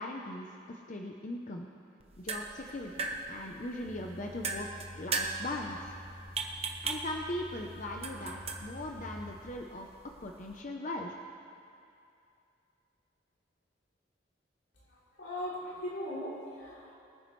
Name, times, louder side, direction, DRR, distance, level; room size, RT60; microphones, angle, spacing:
voice 1, 0.0-1.7 2.2-5.8 6.8-9.9 10.2-11.1, left 1 dB, 40° left, 1 dB, 0.7 m, -39 dB
sound 1, 2.0-10.6, right 4 dB, 35° right, 0.8 m, -39 dB
sound 2, 3.8-9.5, equal, 5° left, 3.4 m, -48 dB
voice 2, 14.9-16.9, left 1 dB, 85° left, -6 dB, 3.3 m, -39 dB
23.0 x 9.4 x 3.2 m, 2.6 s
head